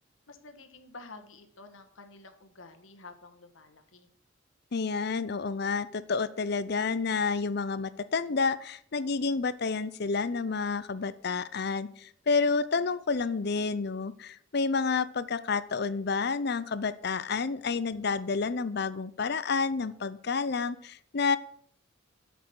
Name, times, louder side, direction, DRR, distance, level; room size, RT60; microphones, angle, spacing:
voice 1, 0.3-4.1, left 3 dB, 80° left, 7 dB, 1.5 m, -50 dB
voice 2, 4.7-21.4, left 4 dB, 55° left, 15 dB, 0.6 m, -29 dB
8.3 x 6.1 x 7.8 m, 0.63 s
head